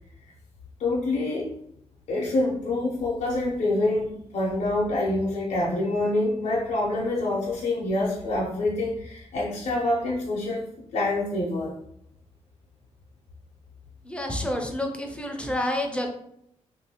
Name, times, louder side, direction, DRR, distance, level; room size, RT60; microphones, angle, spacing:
voice 1, 0.8-1.5 2.1-10.6 10.9-11.7, left 2 dB, 65° left, -4 dB, 0.6 m, -26 dB
voice 2, 14.0-16.1, left 1 dB, 10° left, 2 dB, 0.4 m, -29 dB
3.4 x 2.5 x 2.7 m, 0.74 s
wide cardioid pair, 170°, 12 cm